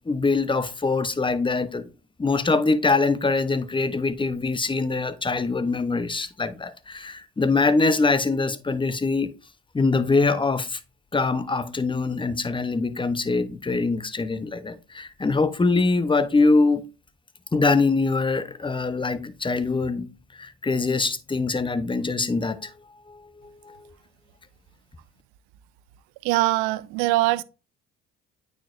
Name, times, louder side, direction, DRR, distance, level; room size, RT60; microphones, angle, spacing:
voice 1, 0.1-1.9 2.2-9.3 9.7-10.8 11.1-16.8 17.5-20.1 20.4-22.7 23.1-23.9, left 3 dB, 15° left, 0.6 m, -23 dB
voice 2, 26.2-27.4, right 19 dB, 85° right, 0.5 m, -22 dB
8.9 x 4.4 x 2.4 m
supercardioid pair, 70°, 35 cm